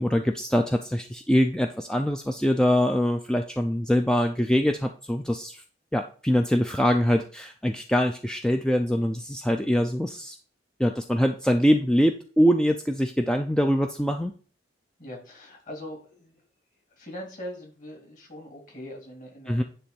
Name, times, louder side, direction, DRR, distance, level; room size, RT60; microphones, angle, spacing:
voice 1, 0.0-5.6 5.9-10.4 10.8-14.3 19.5-19.6, equal, 5° left, 5 dB, 0.5 m, -23 dB
voice 2, 15.0-16.4 16.9-19.6, left 1 dB, 45° left, 0 dB, 3.2 m, -41 dB
10.0 x 3.4 x 7.0 m, 0.41 s
head